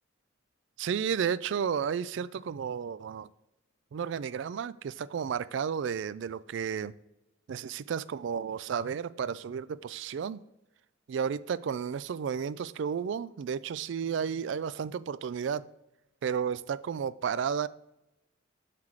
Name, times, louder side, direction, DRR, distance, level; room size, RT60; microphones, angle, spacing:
voice 1, 0.8-3.3 3.9-6.9 7.5-10.4 11.1-15.7 16.2-17.7, right 7 dB, 65° right, 0.3 m, -32 dB
7.3 x 5.8 x 3.2 m
head